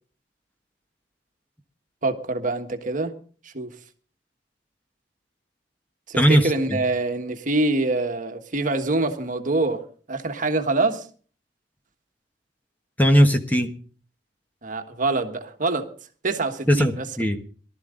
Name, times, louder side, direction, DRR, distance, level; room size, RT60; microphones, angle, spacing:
voice 1, 2.0-3.1 3.4-3.7 6.1-9.8 10.1-11.1 14.6-15.9 16.2-17.0, right 2 dB, 45° right, 7 dB, 1.4 m, -25 dB
voice 2, 6.2-6.8 13.0-13.7 16.7-17.4, equal, 10° left, 6 dB, 1.1 m, -19 dB
19.0 x 12.5 x 3.8 m, 0.41 s
head